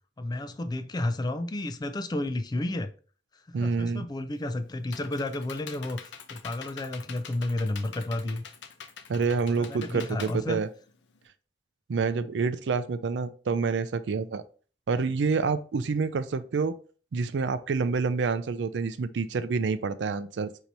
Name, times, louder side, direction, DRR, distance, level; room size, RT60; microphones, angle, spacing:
voice 1, 0.2-2.9 3.5-8.4 9.5-10.6, left 1 dB, 25° left, 0.4 m, -32 dB
voice 2, 3.5-4.1 9.1-10.7 11.9-14.4 14.9-16.8 17.1-20.5, right 4 dB, 80° right, 0.4 m, -28 dB
Computer keyboard, 4.4-11.2, left 6 dB, 75° left, 0.5 m, -45 dB
4.5 x 2.8 x 4.0 m
head